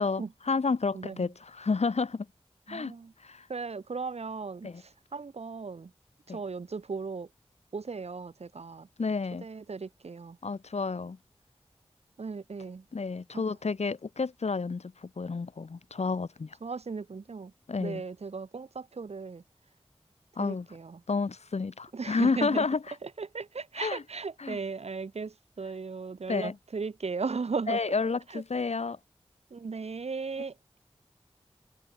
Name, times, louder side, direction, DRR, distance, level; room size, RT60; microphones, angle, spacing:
voice 1, 0.0-2.3 2.7-2.9 3.2-3.5 4.6-4.8 6.3-6.4 9.0-9.4 10.4-11.2 12.9-16.6 17.7-18.0 20.4-20.7 21.1-23.0 23.8-24.0 24.4-24.6 26.3-26.6 27.7-29.0, left 4 dB, 90° left, 3.2 m, -30 dB
voice 2, 0.9-1.3 2.7-3.1 3.5-4.7 5.1-5.9 6.3-7.3 7.7-8.9 9.4-10.4 12.2-12.8 13.3-13.4 16.6-17.5 17.8-19.4 20.4-21.0 21.9-22.6 23.0-27.8 28.3-28.4 29.5-30.5, right 4 dB, 75° right, 1.1 m, -36 dB
wide cardioid pair, 80°, 11 cm